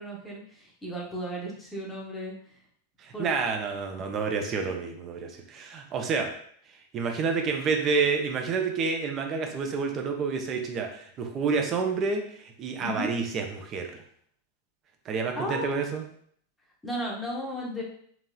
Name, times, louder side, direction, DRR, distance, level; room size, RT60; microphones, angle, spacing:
voice 1, 0.0-2.3 3.1-3.3 4.5-4.8 12.8-13.1 15.4-15.7 16.8-17.8, equal, 5° left, -4 dB, 0.8 m, -35 dB
voice 2, 3.0-6.3 6.9-14.0 15.1-16.0, right 5 dB, 30° right, 4 dB, 0.5 m, -29 dB
2.9 x 2.7 x 2.3 m, 0.62 s
figure-of-eight pair, 90°, 0 cm